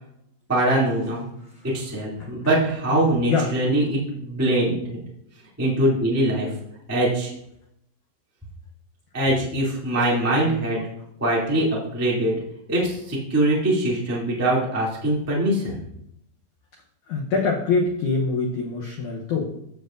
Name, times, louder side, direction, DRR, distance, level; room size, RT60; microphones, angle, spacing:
voice 1, 0.5-1.2 1.7-4.8 5.6-6.5 6.9-7.3 9.1-10.8 11.2-12.4 12.7-15.8, right 1 dB, 5° right, -6 dB, 1.6 m, -22 dB
voice 2, 17.1-19.5, left 4 dB, 90° left, 0 dB, 1.7 m, -24 dB
16.0 x 6.9 x 2.6 m, 0.77 s
omnidirectional pair, 4.9 m